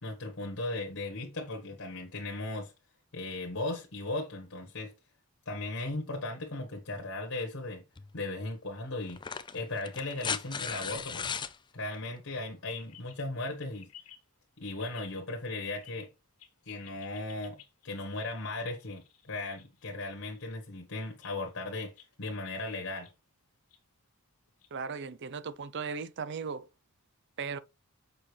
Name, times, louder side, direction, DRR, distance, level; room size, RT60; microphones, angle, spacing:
voice 1, 0.0-2.7 3.1-4.9 5.4-7.8 8.1-9.2 9.5-11.4 11.7-13.9 14.6-16.1 16.6-17.6 17.8-23.1, left 2 dB, 60° left, 1.4 m, -37 dB
sound 1, 8.0-8.1 9.1-11.5 13.1-13.2, left 6 dB, 20° left, 0.4 m, -36 dB
sound 2, 12.8-13.2 13.6-14.3 14.6-15.3 15.7-16.1 16.4-20.6 21.2-21.7 22.0-22.1 22.4-23.1 23.7-23.8 24.5-24.7 26.0-26.1, left 10 dB, 85° left, 1.8 m, -56 dB
voice 2, 24.7-26.7 27.4-27.6, right 5 dB, 50° right, 0.5 m, -37 dB
6.7 x 5.5 x 3.3 m
head